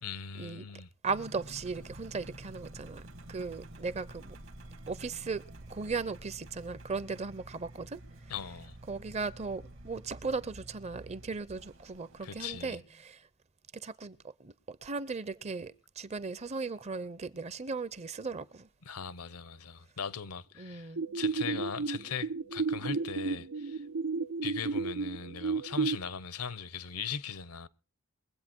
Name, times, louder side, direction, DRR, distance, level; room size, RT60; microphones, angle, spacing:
voice 1, 0.0-0.9 8.3-8.8 12.2-12.8 18.8-23.8 24.4-27.7, left 6 dB, 85° left, 0.9 m, -39 dB
voice 2, 1.0-3.0 3.3-4.4 4.9-5.4 5.7-8.0 8.9-13.2 13.8-18.7 20.6-21.0, right 4 dB, 30° right, 0.6 m, -37 dB
Engine, 1.1-12.7, right 1 dB, 60° right, 1.4 m, -49 dB
sound 1, 21.0-26.0, right 4 dB, 90° right, 0.6 m, -32 dB
22.5 x 8.3 x 4.4 m
head